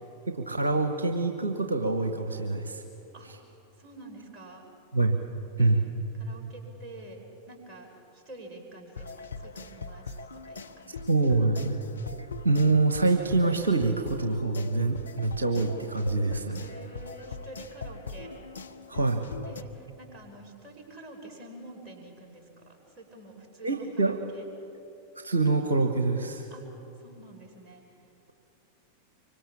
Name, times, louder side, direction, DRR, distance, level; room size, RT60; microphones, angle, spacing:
voice 1, 0.3-2.8 4.9-5.2 5.6-5.8 11.1-11.8 12.4-16.6 18.9-19.2 23.6-24.2 25.2-26.4, right 3 dB, 75° right, 6 dB, 1.3 m, -25 dB
voice 2, 3.8-4.6 5.6-5.7 6.2-7.2 7.5-11.0 11.4-11.5 16.6-18.4 19.4-24.5 26.5-26.6 27.0-27.8, right 1 dB, 30° right, 1 dB, 5.5 m, -48 dB
sound 1, 9.0-19.6, left 4 dB, 75° left, 0.8 m, -41 dB
25.0 x 24.0 x 7.2 m, 2.9 s
figure-of-eight pair, 90°, 0 cm